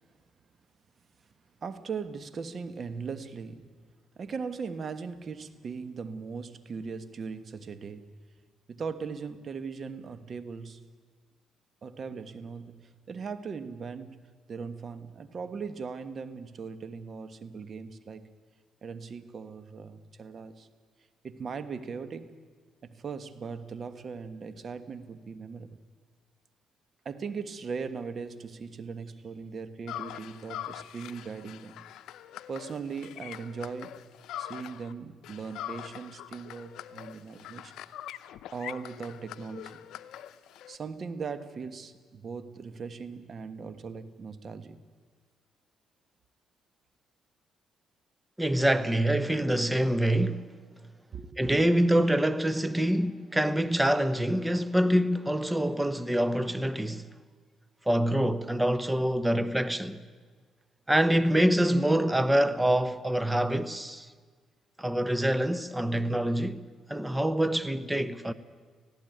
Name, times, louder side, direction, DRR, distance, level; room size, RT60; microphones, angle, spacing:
voice 1, 1.6-3.7 4.1-8.1 8.7-10.9 11.8-14.2 14.5-18.2 18.8-20.7 21.2-22.3 22.8-25.8 27.0-31.8 32.5-33.9 34.4-37.7 38.5-39.8 40.7-44.8 48.7-49.4 51.1-51.5, right 5 dB, 45° right, 1.4 m, -39 dB
sound 1, 29.9-34.9 35.2-40.8, left 12 dB, 85° left, 0.7 m, -43 dB
voice 2, 48.4-50.4 51.4-57.0 57.9-60.0 60.9-64.1 64.8-66.6 66.9-68.3, right 1 dB, 10° right, 0.9 m, -25 dB
18.5 x 15.5 x 9.3 m
cardioid pair, 90°, 0 cm